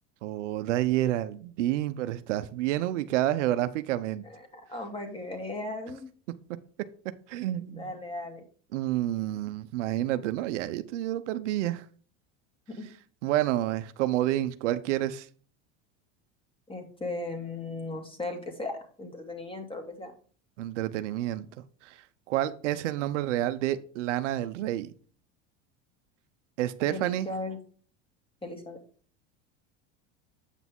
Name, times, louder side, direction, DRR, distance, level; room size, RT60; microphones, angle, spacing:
voice 1, 0.2-4.2 7.3-7.9 8.7-11.8 13.2-15.3 20.6-21.5 21.8-22.0 22.3-24.9 26.6-27.3, right 14 dB, 85° right, 0.7 m, -29 dB
voice 2, 4.2-6.1 7.7-8.4 12.7-12.9 16.7-20.1 26.9-27.6 28.4-28.8, left 2 dB, 15° left, 2.3 m, -37 dB
8.3 x 6.0 x 3.6 m
supercardioid pair, 105°, 35 cm